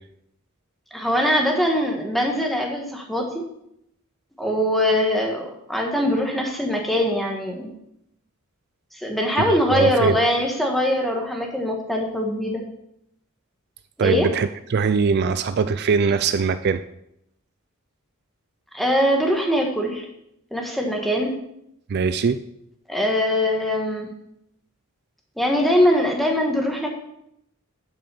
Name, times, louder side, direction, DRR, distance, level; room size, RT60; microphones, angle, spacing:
voice 1, 0.9-3.4 4.4-7.7 8.9-12.6 14.0-14.3 18.7-20.0 20.5-21.3 22.9-24.1 25.4-26.9, equal, ahead, 1 dB, 1.6 m, -22 dB
voice 2, 9.4-10.2 14.0-16.8 21.9-22.4, right 5 dB, 50° right, 11 dB, 0.4 m, -21 dB
8.7 x 5.6 x 6.9 m, 0.78 s
head